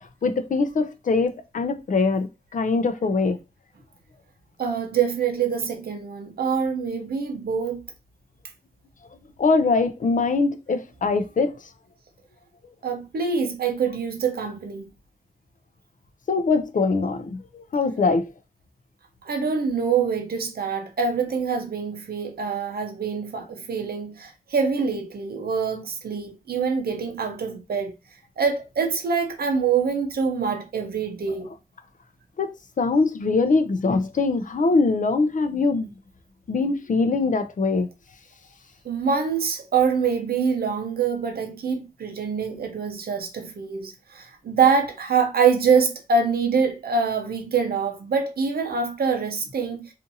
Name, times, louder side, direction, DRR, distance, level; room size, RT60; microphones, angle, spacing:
voice 1, 0.2-3.4 9.4-11.5 16.3-18.3 32.4-32.5 32.8-35.9 36.5-37.9, left 3 dB, 55° left, 0.4 m, -22 dB
voice 2, 4.6-7.9 12.8-14.8 19.3-27.9 28.4-31.5 38.8-49.9, right 5 dB, 85° right, 0.6 m, -25 dB
2.7 x 2.5 x 2.6 m
wide cardioid pair, 90°, 16 cm